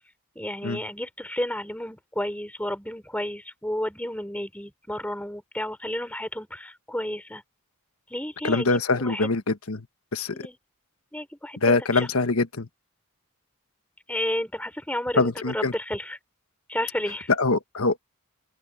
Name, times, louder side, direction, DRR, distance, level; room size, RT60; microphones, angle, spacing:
voice 1, 0.3-7.4 8.1-8.8 9.0-9.3 10.3-10.6 11.1-12.1 14.1-16.2 16.7-17.3, left 1 dB, 5° left, 4.9 m, -32 dB
voice 2, 8.4-9.9 10.1-10.5 11.6-12.7 15.1-15.7 17.3-18.0, left 3 dB, 70° left, 1.3 m, -23 dB
open air
head